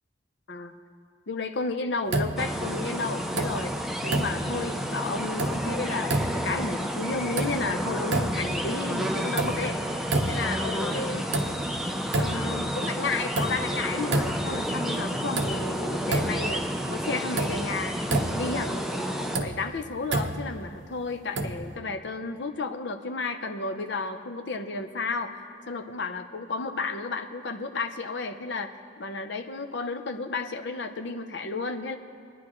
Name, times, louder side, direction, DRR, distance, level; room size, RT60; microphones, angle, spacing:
voice 1, 1.3-9.8 10.3-11.3 12.2-18.0 18.3-25.3 25.7-28.7 29.0-32.0, left 3 dB, 65° left, 6 dB, 0.7 m, -32 dB
sound 1, 2.1-2.8 3.2-3.8 4.1-4.8 5.2-5.8 6.0-6.7 7.1-7.8 8.1-8.7 9.1-9.8 10.1-10.7 11.1-11.8 12.1-12.7 13.1-14.6 15.0-15.1 15.4-16.6 16.9-17.0 17.4-18.6 19.1-20.6 21.4-21.8, right 2 dB, 70° right, 0.8 m, -30 dB
sound 2, 2.4-19.4, equal, ahead, 0.5 m, -30 dB
26.0 x 10.0 x 3.1 m, 2.3 s
head